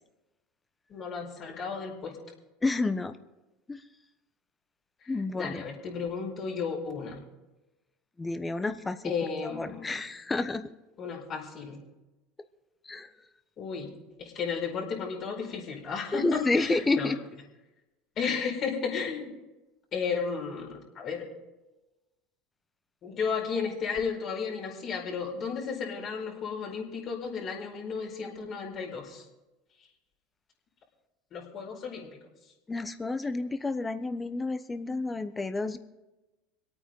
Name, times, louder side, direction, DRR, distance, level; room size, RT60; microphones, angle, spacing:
voice 1, 0.9-2.2 5.3-7.2 9.0-9.9 11.0-11.8 13.6-13.9 14.2-17.1 18.2-19.3 19.9-21.2 23.0-29.2 31.3-32.1, left 5 dB, 45° left, 0 dB, 4.8 m, -33 dB
voice 2, 2.6-3.2 3.7-3.8 5.1-5.6 8.2-9.1 9.4-10.7 12.8-13.1 16.1-17.2 32.7-35.8, left 3 dB, 15° left, 10 dB, 1.1 m, -30 dB
26.0 x 9.0 x 3.8 m, 1.1 s
hypercardioid pair, 95°, 0 cm